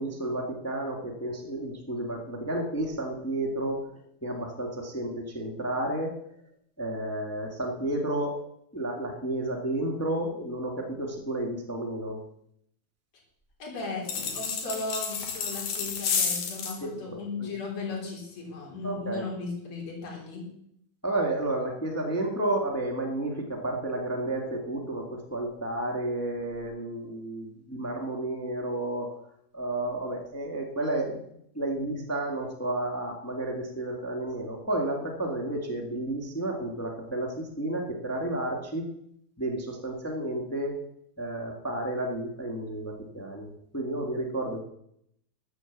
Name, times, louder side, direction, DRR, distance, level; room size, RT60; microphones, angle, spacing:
voice 1, 0.0-3.9 4.2-6.1 6.8-8.3 8.7-12.2 16.8-17.0 17.4-17.5 18.8-19.2 21.0-29.2 29.5-38.8 39.4-40.8 41.2-44.6, right 1 dB, 25° left, 1 dB, 0.3 m, -31 dB
voice 2, 13.6-14.1 14.3-20.5, left 3 dB, 45° left, -2 dB, 4.7 m, -36 dB
sound 1, 14.1-16.8, left 6 dB, 80° left, 3.7 m, -30 dB
13.0 x 8.0 x 7.4 m, 0.73 s
omnidirectional pair, 4.4 m